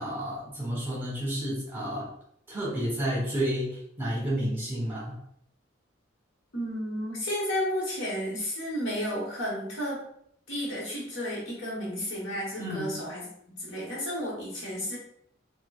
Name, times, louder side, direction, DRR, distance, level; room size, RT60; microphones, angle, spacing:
voice 1, 0.0-2.1 2.5-5.1 12.6-12.9, equal, 10° right, -6 dB, 1.1 m, -31 dB
voice 2, 6.5-10.0 10.5-13.3 13.6-15.0, equal, 75° left, -3 dB, 1.3 m, -32 dB
4.3 x 2.4 x 2.4 m, 0.70 s
head